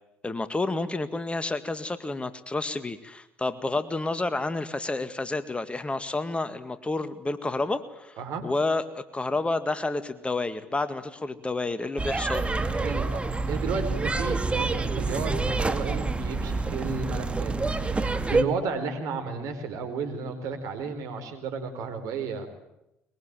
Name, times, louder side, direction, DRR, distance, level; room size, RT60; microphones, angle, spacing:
voice 1, 0.2-8.2 8.4-12.5, left 2 dB, 20° left, 12 dB, 2.0 m, -30 dB
sound 1, 12.0-18.4, right 3 dB, 20° right, 2.3 m, -27 dB
voice 2, 12.7-13.2 13.5-22.6, right 4 dB, 70° right, 7 dB, 4.7 m, -33 dB
22.5 x 22.0 x 9.1 m, 0.88 s
hypercardioid pair, 60°, 6 cm